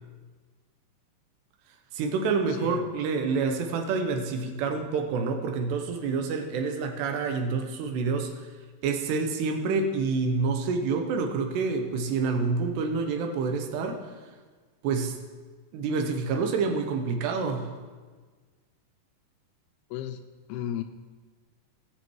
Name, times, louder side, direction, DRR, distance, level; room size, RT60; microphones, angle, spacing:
voice 1, 1.9-8.3 8.8-14.0 14.8-15.1 15.7-17.7, right 4 dB, 80° right, 4 dB, 3.2 m, -27 dB
voice 2, 2.5-3.0 19.9-20.2 20.5-20.8, left 11 dB, 80° left, 8 dB, 2.3 m, -34 dB
19.5 x 7.4 x 4.7 m, 1.4 s
omnidirectional pair, 4.8 m